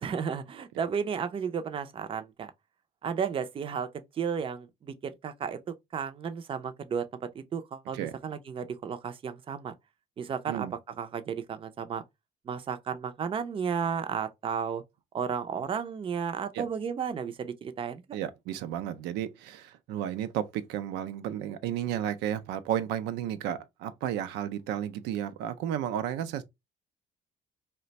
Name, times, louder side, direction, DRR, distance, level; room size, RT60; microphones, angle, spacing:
voice 1, 0.0-2.5 3.0-3.9 4.1-9.7 10.2-12.0 12.5-14.8 15.1-18.0, right 7 dB, 30° right, 0.4 m, -33 dB
voice 2, 18.1-26.4, right 10 dB, 90° right, 0.4 m, -33 dB
2.4 x 2.1 x 3.9 m
cardioid pair, 110°, 17 cm